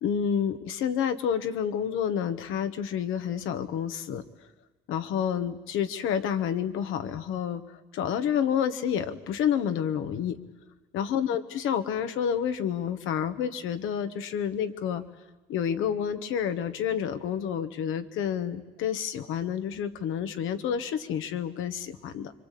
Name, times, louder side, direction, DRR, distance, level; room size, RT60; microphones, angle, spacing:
voice 1, 0.0-4.2 4.9-10.4 10.9-15.0 15.5-22.3, left 8 dB, 90° left, 9 dB, 1.4 m, -29 dB
26.0 x 24.0 x 8.4 m, 1.2 s
cardioid pair, 90°, 20 cm